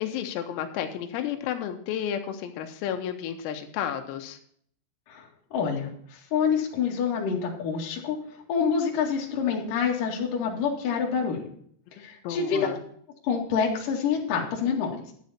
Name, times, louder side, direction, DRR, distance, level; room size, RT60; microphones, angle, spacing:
voice 1, 0.0-4.4 12.2-12.8, left 9 dB, 90° left, 6 dB, 3.8 m, -32 dB
voice 2, 5.5-5.9 6.3-8.2 8.5-11.5 12.0-12.7 13.2-14.9, left 6 dB, 50° left, -1 dB, 3.2 m, -26 dB
11.0 x 9.6 x 4.3 m, 0.62 s
omnidirectional pair, 6.0 m